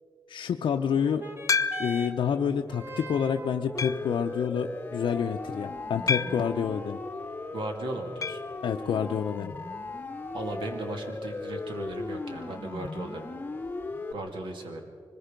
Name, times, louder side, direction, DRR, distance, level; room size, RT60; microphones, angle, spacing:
voice 1, 0.3-1.2 1.8-7.0 8.6-9.5, left 7 dB, 85° left, 3 dB, 0.7 m, -28 dB
sound 1, 0.9-9.9 10.7-10.8, right 1 dB, 25° right, 1.5 m, -45 dB
sound 2, 1.5-2.2 2.8-2.9 3.8-4.2 6.1-6.6 8.2-8.5 8.8-8.9 9.1-9.2 11.2-11.3, left 5 dB, 40° left, 0.5 m, -29 dB
Siren, 3.7-14.1, left 3 dB, 20° left, 0.9 m, -38 dB
voice 2, 7.5-8.4 10.3-13.2 14.1-14.8, right 1 dB, 75° right, 3 dB, 2.5 m, -36 dB
25.0 x 21.0 x 5.2 m, 2.2 s
wide cardioid pair, 170°, 8 cm